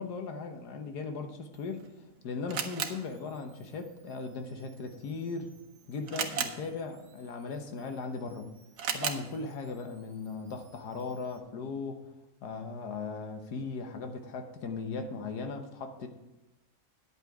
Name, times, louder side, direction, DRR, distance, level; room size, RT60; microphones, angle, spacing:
voice 1, 0.0-1.9 2.2-5.5 5.9-8.5 8.9-12.1 12.4-16.1, left 4 dB, 80° left, 6 dB, 1.6 m, -38 dB
Camera, 1.5-11.4, right 7 dB, 75° right, 1.4 m, -41 dB
10.0 x 8.2 x 4.8 m, 1.0 s
omnidirectional pair, 1.7 m